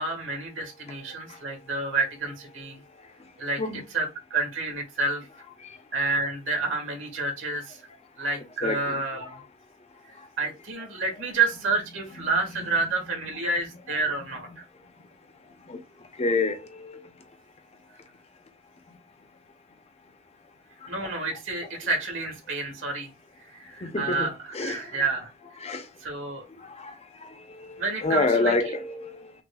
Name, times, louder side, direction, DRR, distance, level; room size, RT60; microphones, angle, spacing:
voice 1, 0.0-2.8 3.4-3.6 3.9-4.1 4.3-5.3 5.9-7.8 8.2-9.4 10.4-14.6 20.9-23.1 23.5-24.3 24.6-25.3 26.0-26.4 27.8-28.5, right 3 dB, 65° right, 2.0 m, -29 dB
voice 2, 8.6-9.5 10.1-10.3 10.8-10.9 12.1-13.4 14.3-14.6 15.7-17.1 18.9-19.0 20.8-21.2 21.6-21.9 23.8-25.2 25.6-25.9 26.5-29.3, left 3 dB, 30° left, 0.7 m, -31 dB
6.0 x 2.6 x 2.4 m
head